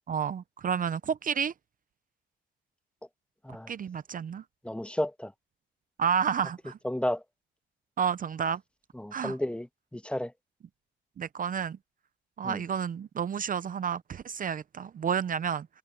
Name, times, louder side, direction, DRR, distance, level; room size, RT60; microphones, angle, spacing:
voice 1, 0.1-1.5 3.7-4.4 6.0-6.8 8.0-8.6 9.1-9.3 11.2-11.8 12.4-15.7, right 7 dB, 45° right, 0.6 m, -30 dB
voice 2, 4.6-5.3 6.8-7.2 8.9-10.3 12.4-12.6, left 1 dB, 5° left, 1.3 m, -32 dB
cardioid pair, 90°, 20 cm